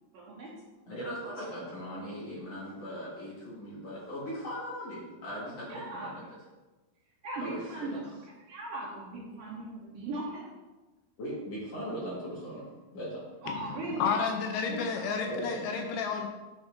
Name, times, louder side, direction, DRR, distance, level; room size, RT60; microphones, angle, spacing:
voice 1, 0.1-0.5 5.7-6.2 7.2-8.2 8.5-10.5 13.4-14.1 14.7-15.1, right 2 dB, 70° right, -5 dB, 2.2 m, -38 dB
voice 2, 0.9-6.2 7.3-8.0 11.2-12.6 12.9-13.2 15.3-15.6, equal, 50° left, -7 dB, 2.1 m, -39 dB
voice 3, 13.5-16.3, left 5 dB, 80° left, 3 dB, 2.5 m, -31 dB
10.5 x 5.6 x 2.6 m, 1.1 s
omnidirectional pair, 4.9 m